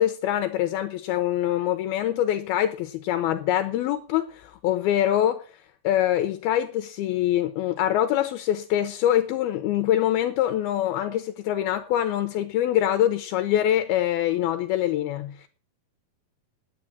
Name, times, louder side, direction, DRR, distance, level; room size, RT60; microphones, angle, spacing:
voice 1, 0.0-15.5, left 12 dB, 80° left, 2.5 m, -24 dB
10.0 x 9.2 x 7.1 m
omnidirectional pair, 4.7 m